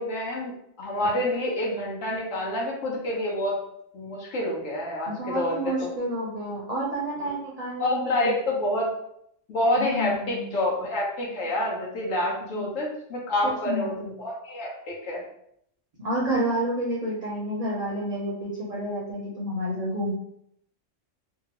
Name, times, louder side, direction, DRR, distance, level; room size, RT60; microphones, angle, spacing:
voice 1, 0.0-3.6 3.9-5.9 7.8-8.9 9.5-15.2, left 1 dB, 85° left, -4 dB, 1.2 m, -28 dB
voice 2, 5.1-8.3 9.8-10.6 12.5-12.7 13.4-14.0 16.0-20.1, right 1 dB, 40° right, -5 dB, 0.6 m, -30 dB
2.8 x 2.4 x 2.9 m, 0.72 s
omnidirectional pair, 1.3 m